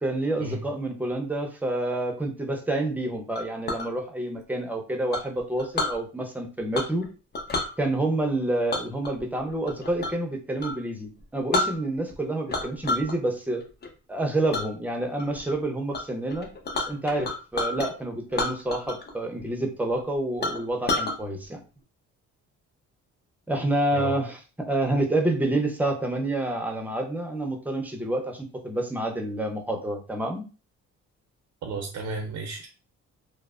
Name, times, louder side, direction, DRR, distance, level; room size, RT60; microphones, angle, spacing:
voice 1, 0.0-7.1 7.8-13.6 14.1-16.5 16.9-21.6 23.5-30.4, right 1 dB, 5° right, 3 dB, 0.6 m, -28 dB
Chink clink, 3.4-3.9 5.1-6.0 6.7-7.1 7.3-7.7 8.7-10.2 10.6-10.8 11.2-11.3 11.5-12.2 12.5-13.1 13.5-13.9 14.5-14.7 15.2-15.5 15.9-16.0 16.3-17.9 18.3-19.1 19.4-19.5 20.0-20.1 20.4-21.2, left 2 dB, 35° left, 0.7 m, -29 dB
voice 2, 31.6-32.7, right 3 dB, 75° right, 2 dB, 0.6 m, -33 dB
3.1 x 2.0 x 2.4 m, 0.34 s
cardioid pair, 90°, 30 cm